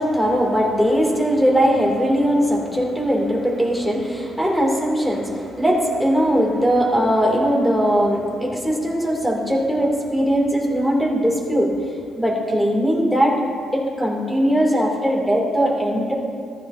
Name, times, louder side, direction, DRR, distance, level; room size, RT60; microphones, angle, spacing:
voice 1, 0.0-11.8 12.2-13.4 13.7-16.1, equal, 5° left, -1 dB, 2.3 m, -20 dB
14.5 x 13.0 x 2.6 m, 2.4 s
cardioid pair, 90°, 0 cm